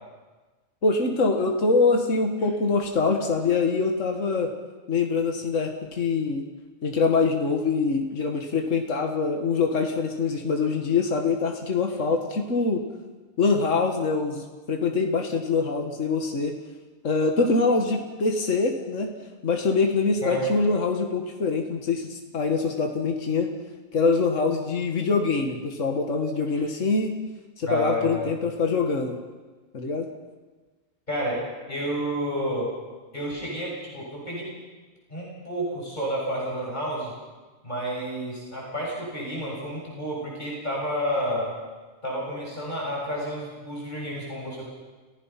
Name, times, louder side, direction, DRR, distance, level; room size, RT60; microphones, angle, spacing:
voice 1, 0.8-4.5 4.9-6.4 6.8-12.8 13.4-16.6 17.0-19.1 19.4-23.5 23.9-27.1 27.6-29.2 29.7-30.1, left 4 dB, 70° left, 3 dB, 2.1 m, -24 dB
voice 2, 27.6-28.3 31.1-31.4 31.7-32.7 33.1-34.5 35.1-37.1 37.6-41.6 42.0-44.7, equal, 35° left, -4 dB, 7.0 m, -30 dB
30.0 x 16.5 x 5.9 m, 1.3 s
omnidirectional pair, 1.3 m